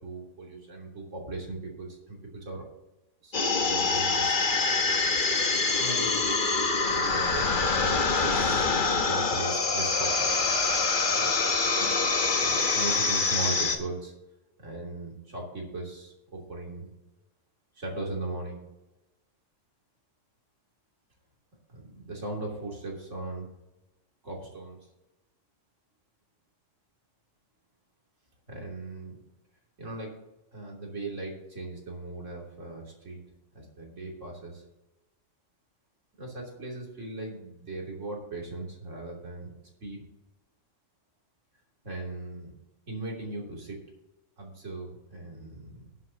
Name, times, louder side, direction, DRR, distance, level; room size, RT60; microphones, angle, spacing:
voice 1, 0.0-2.6 3.2-4.5 4.8-5.1 5.8-10.5 11.1-11.4 11.8-12.1 12.4-14.1 14.6-16.9 17.7-18.6 21.7-23.5 24.2-24.8 28.5-29.2 29.8-30.1 30.5-33.2 33.5-34.6 36.2-39.5 39.8-40.0 41.8-42.5 42.9-43.8 44.4-45.8, right 2 dB, 75° right, -2 dB, 3.4 m, -38 dB
sound 1, 3.3-13.8, left 4 dB, 45° left, 1.1 m, -25 dB
19.5 x 7.6 x 2.9 m, 0.99 s
omnidirectional pair, 1.3 m